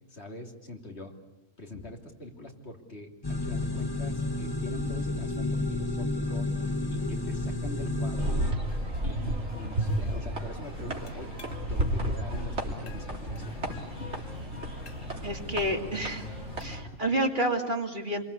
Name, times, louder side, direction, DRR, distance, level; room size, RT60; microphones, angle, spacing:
voice 1, 0.1-1.1 1.6-6.5 6.9-8.4 9.0-14.2 16.8-17.0, left 1 dB, 55° left, 1 dB, 3.5 m, -43 dB
sound 1, 3.2-8.5, left 2 dB, 20° left, 1.4 m, -31 dB
sound 2, 8.2-16.8, right 1 dB, 60° right, 3.2 m, -33 dB
sound 3, 8.7-16.8, left 7 dB, 80° left, 1.7 m, -45 dB
voice 2, 15.2-16.3 16.6-18.2, right 1 dB, 40° right, 3 dB, 2.6 m, -29 dB
27.5 x 23.5 x 8.5 m, 0.93 s
omnidirectional pair, 1.3 m